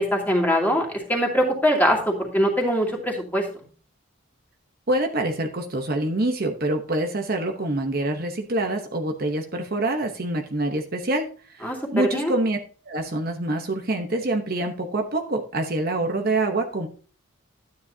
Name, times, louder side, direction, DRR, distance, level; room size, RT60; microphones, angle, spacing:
voice 1, 0.0-3.4 11.6-12.3, equal, 10° left, -1 dB, 2.6 m, -22 dB
voice 2, 4.9-11.3 11.6-12.6 12.9-16.9, right 2 dB, 45° right, 4 dB, 1.0 m, -26 dB
12.5 x 9.5 x 2.8 m, 0.39 s
head